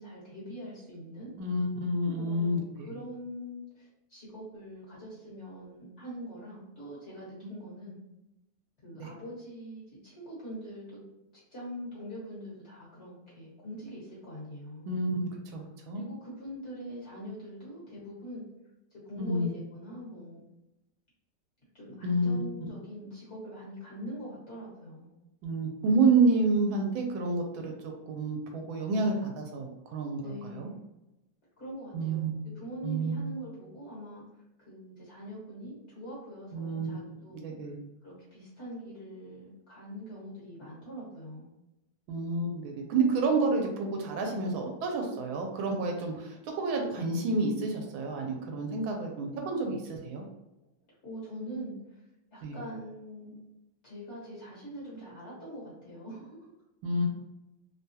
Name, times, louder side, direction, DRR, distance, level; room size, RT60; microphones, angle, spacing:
voice 1, 0.0-1.3 2.2-8.0 8.8-11.0 11.5-14.9 15.9-18.4 18.9-20.4 21.7-25.1 30.1-30.8 31.6-37.6 38.0-41.5 51.0-52.0 52.3-53.4 53.8-56.5 57.0-57.1, equal, 40° left, -7 dB, 1.4 m, -43 dB
voice 2, 1.4-2.9 9.0-9.1 14.9-15.2 15.5-16.0 19.2-19.5 22.0-22.5 25.4-30.7 31.9-32.5 32.8-33.3 36.5-37.0 37.4-37.8 42.1-50.2 52.4-52.6 56.8-57.1, right 3 dB, 85° right, 2 dB, 1.4 m, -29 dB
3.4 x 2.2 x 2.7 m, 0.94 s
omnidirectional pair, 2.2 m